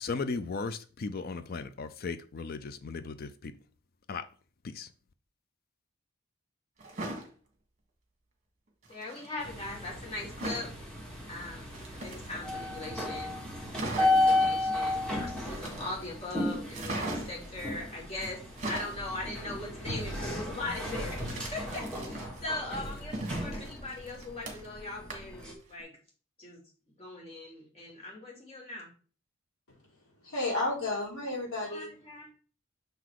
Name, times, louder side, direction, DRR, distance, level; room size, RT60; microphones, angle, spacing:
voice 1, 0.0-3.5 4.1-4.2 4.6-4.9, left 4 dB, 45° left, 0.4 m, -36 dB
sound 1, 6.8-7.3 8.8-9.3 10.4-10.7 11.6-12.6 13.0-13.1 13.4-13.5 13.7-14.3 15.4-16.1 16.7-17.5 18.4-19.0 21.2-22.4 22.8-24.8 25.1-25.4 25.8-25.9, right 2 dB, 35° right, 1.5 m, -38 dB
voice 2, 8.9-10.7 11.3-13.4 13.8-25.9 26.4-26.6 27.0-28.9 31.7-32.3, left 2 dB, 30° left, 2.7 m, -40 dB
sound 2, 9.4-25.5, left 2 dB, 5° left, 1.6 m, -34 dB
voice 3, 30.2-31.9, left 2 dB, 75° left, 3.8 m, -32 dB
6.7 x 4.0 x 4.7 m
head